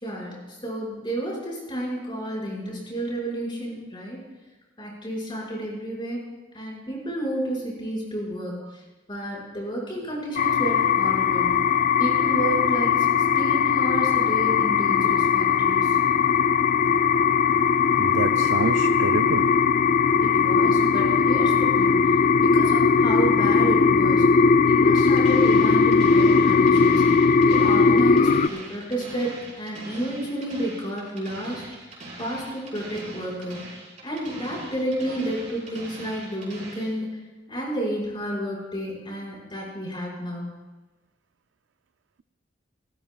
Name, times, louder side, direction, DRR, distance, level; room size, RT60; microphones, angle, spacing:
voice 1, 0.0-4.2 4.8-6.2 6.5-8.8 9.1-11.5 12.0-12.9 13.2-16.0 20.2-22.1 22.4-24.2 24.6-27.0 27.4-31.6 32.2-33.6 34.0-37.1 37.5-40.5, right 1 dB, 25° left, -4 dB, 5.7 m, -31 dB
sound 1, 10.4-28.5, left 5 dB, 40° left, 0.3 m, -19 dB
voice 2, 18.0-19.5 26.3-26.5, right 5 dB, 70° right, 10 dB, 0.4 m, -28 dB
sound 2, 25.0-37.0, right 2 dB, 35° right, 5.5 m, -42 dB
28.5 x 14.0 x 2.4 m, 1.2 s
head